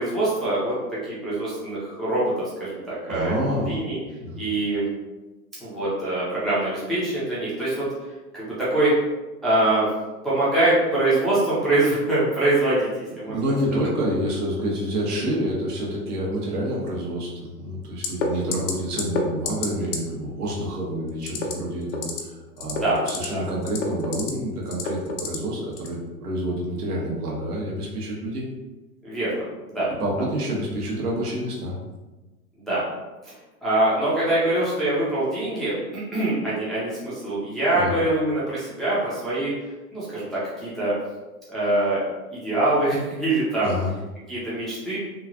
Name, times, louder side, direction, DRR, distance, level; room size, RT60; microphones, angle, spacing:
voice 1, 0.0-2.3 2.6-4.0 4.4-4.9 5.6-7.9 8.3-8.9 9.4-9.9 10.2-12.9 13.2-13.4 13.8-13.9 22.8-23.0 23.3-23.4 29.0-29.4 29.7-29.9 32.6-32.8 33.2-33.3 33.6-39.5 39.9-40.9 41.5-42.0 42.3-43.7 44.3-45.0, right 2 dB, ahead, -10 dB, 0.5 m, -24 dB
voice 2, 3.1-3.8 4.1-4.4 13.3-28.4 30.0-31.7 37.7-37.9 43.6-43.9, equal, 80° right, -3 dB, 1.1 m, -28 dB
sound 1, 18.0-18.3 18.5-18.7 19.0-19.2 19.5-19.7 19.9-20.0 21.2-21.5 21.9-22.2 22.6-23.3 23.6-24.3 24.7-25.4 25.8-25.9, left 6 dB, 55° left, 0.7 m, -27 dB
3.0 x 2.4 x 2.4 m, 1.1 s
hypercardioid pair, 110°, 46 cm